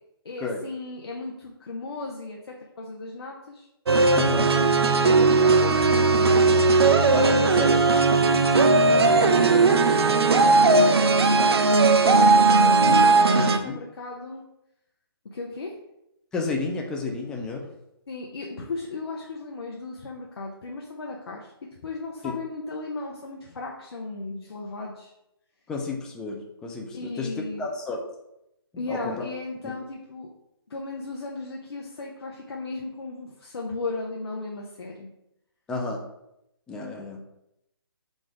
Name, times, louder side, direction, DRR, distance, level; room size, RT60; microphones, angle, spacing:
voice 1, 0.2-3.7 4.5-6.6 7.3-8.7 9.3-12.1 12.5-14.4 15.2-15.7 18.1-21.5 21.8-25.1 26.9-27.7 28.8-30.3 30.7-35.1, left 3 dB, 75° left, -2 dB, 0.8 m, -36 dB
sound 1, 3.9-13.6, right 3 dB, 80° right, 0.5 m, -18 dB
voice 2, 4.2-4.5 7.1-7.8 9.4-9.6 12.8-13.0 13.4-13.8 16.3-17.7 22.2-22.3 25.7-27.3 27.6-28.0 28.9-29.3 29.6-29.7 35.7-36.0 36.7-37.2, left 3 dB, 5° left, 0 dB, 0.3 m, -31 dB
4.0 x 2.5 x 4.7 m, 0.84 s
hypercardioid pair, 150°, 13 cm